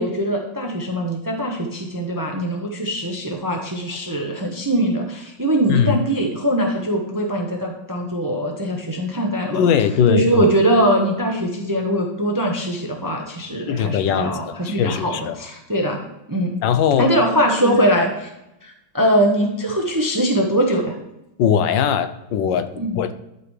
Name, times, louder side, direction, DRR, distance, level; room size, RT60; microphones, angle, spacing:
voice 1, 0.0-9.6 10.1-16.0 16.3-16.6 17.0-18.3 18.6-20.9 22.8-23.0, right 1 dB, 20° right, 2 dB, 0.6 m, -21 dB
voice 2, 9.5-10.5 13.7-15.4 16.6-17.1 17.6-17.8 21.4-22.7 22.9-23.1, left 8 dB, 85° left, 10 dB, 1.4 m, -20 dB
12.0 x 5.2 x 3.2 m, 0.90 s
omnidirectional pair, 2.0 m